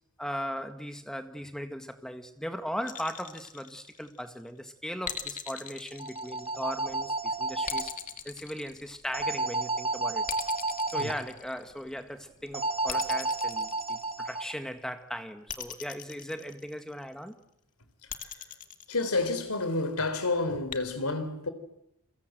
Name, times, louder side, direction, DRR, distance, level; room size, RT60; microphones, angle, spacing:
voice 1, 0.2-7.9 8.3-10.3 10.9-17.4, equal, 5° left, 1.7 m, -38 dB
sound 1, 2.9-4.3 5.1-6.9 7.7-9.4 10.3-12.0 12.9-14.5 15.5-17.0 18.1-19.6 20.7-20.8, left 8 dB, 35° left, 2.1 m, -40 dB
sound 2, 5.9-7.9 9.1-11.1 12.5-14.5, right 3 dB, 25° right, 2.3 m, -31 dB
voice 2, 18.9-21.5, left 3 dB, 90° left, 3.8 m, -30 dB
29.0 x 24.0 x 8.0 m
head